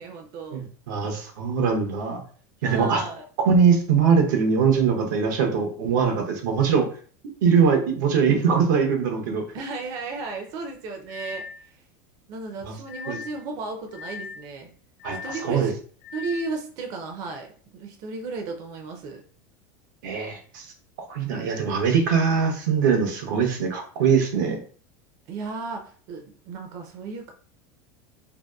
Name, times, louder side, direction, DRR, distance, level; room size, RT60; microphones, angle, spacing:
voice 1, 0.0-0.6 2.6-3.2 9.5-11.8 12.3-14.7 15.2-15.7 16.1-17.5 17.7-19.2 25.3-27.3, right 3 dB, 40° right, 3 dB, 0.4 m, -34 dB
voice 2, 0.5-2.2 2.6-3.0 3.4-6.9 7.4-9.4 12.6-12.7 13.1-13.2 15.0-15.2 15.4-15.7 20.0-20.7 21.1-24.6, right 6 dB, 85° right, 3 dB, 0.7 m, -22 dB
sound 1, 11.1-11.6 12.9-13.4 13.9-14.4 15.0-15.5 16.0-16.5, left 6 dB, 70° left, 0.6 m, -39 dB
2.7 x 2.1 x 2.2 m, 0.43 s
supercardioid pair, 160°, 10 cm